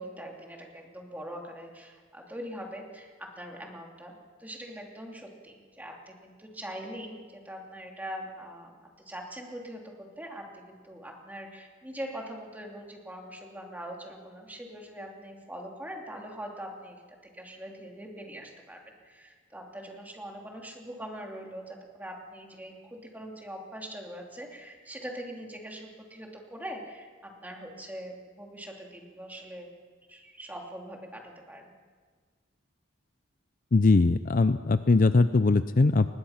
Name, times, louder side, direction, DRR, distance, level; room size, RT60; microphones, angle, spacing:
voice 1, 0.0-4.1 4.4-8.8 9.0-17.0 17.3-18.8 19.0-29.7 30.1-31.7, equal, 10° right, 0 dB, 3.0 m, -42 dB
voice 2, 33.7-36.1, left 3 dB, 45° left, 12 dB, 0.5 m, -21 dB
23.5 x 20.5 x 5.8 m, 1.5 s
head